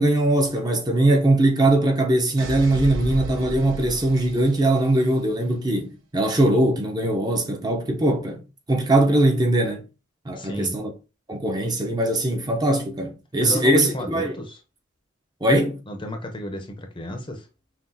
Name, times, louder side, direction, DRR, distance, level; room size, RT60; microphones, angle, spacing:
voice 1, 0.0-8.4 8.7-9.8 10.3-10.9 11.3-14.3 15.4-15.8, right 1 dB, 20° right, 0.6 m, -21 dB
sound 1, 2.4-5.2, right 1 dB, 90° right, 0.9 m, -34 dB
voice 2, 10.4-10.7 13.4-14.6 15.9-17.5, equal, 25° left, 0.7 m, -32 dB
5.8 x 2.4 x 2.7 m
head